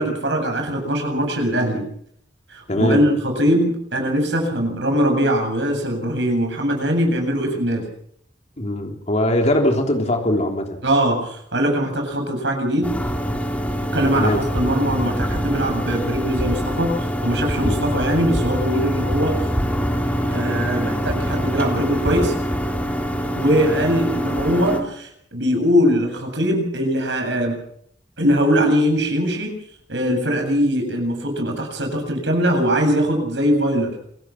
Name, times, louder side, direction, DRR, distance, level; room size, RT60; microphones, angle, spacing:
voice 1, 0.0-1.8 2.5-7.9 10.8-13.0 13.9-19.5 20.3-22.3 23.4-27.6 28.2-29.5 29.9-33.9, equal, 75° right, 3 dB, 7.9 m, -21 dB
voice 2, 2.7-3.1 8.6-10.8 14.1-14.5 17.6-17.8, left 1 dB, 40° left, 2 dB, 3.5 m, -21 dB
sound 1, 12.8-24.8, equal, 10° left, 3.5 m, -24 dB
27.0 x 17.5 x 6.0 m, 0.67 s
head